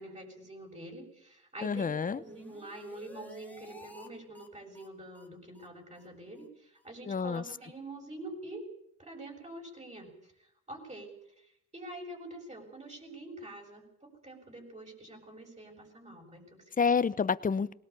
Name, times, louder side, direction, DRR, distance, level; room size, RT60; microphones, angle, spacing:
voice 1, 0.0-8.7 9.0-16.9, right 1 dB, 25° right, 1 dB, 7.2 m, -46 dB
voice 2, 1.6-2.2 7.0-7.4 16.8-17.7, left 5 dB, 25° left, 17 dB, 0.8 m, -28 dB
sound 1, 2.2-4.1 4.3-4.5 4.7-4.9 5.1-5.3 5.5-5.7 5.9-6.1 6.4-6.5 6.8-6.9 7.2-7.3, left 2 dB, 5° left, 3.5 m, -54 dB
21.0 x 18.0 x 8.5 m, 0.75 s
cardioid pair, 90°, 30 cm